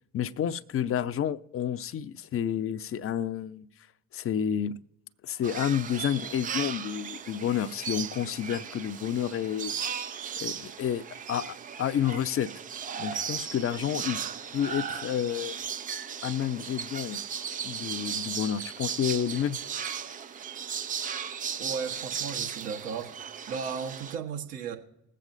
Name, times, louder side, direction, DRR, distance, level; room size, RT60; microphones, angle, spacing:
voice 1, 0.1-3.7 4.1-4.8 5.2-10.0 10.4-12.5 13.0-14.2 14.5-15.6 16.2-17.2 17.6-19.6, left 9 dB, 30° left, 0.6 m, -30 dB
sound 1, 5.4-24.2, right 7 dB, 20° right, 0.3 m, -36 dB
voice 2, 21.6-23.1 23.5-24.8, right 6 dB, 70° right, 1.5 m, -35 dB
21.0 x 7.5 x 2.6 m
figure-of-eight pair, 50°, 49 cm